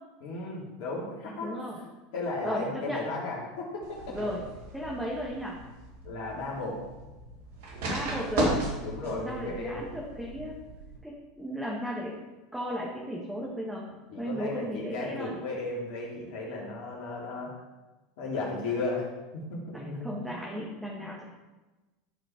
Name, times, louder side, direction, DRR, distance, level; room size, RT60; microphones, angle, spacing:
voice 1, 0.2-1.8 2.1-4.2 6.0-6.8 8.8-9.9 14.1-17.5 18.2-19.1 19.3-20.6, left 3 dB, 60° left, -4 dB, 3.0 m, -35 dB
voice 2, 1.4-1.7 2.4-3.0 4.1-4.4 4.7-5.6 7.8-8.6 9.0-10.6 11.0-12.2 12.5-13.8 14.2-15.3 19.7-21.2, equal, 5° right, -4 dB, 1.7 m, -35 dB
sound 1, 3.8-11.0, right 2 dB, 65° right, 2.0 m, -35 dB
12.0 x 4.9 x 4.5 m, 1.1 s
hypercardioid pair, 80°, 0 cm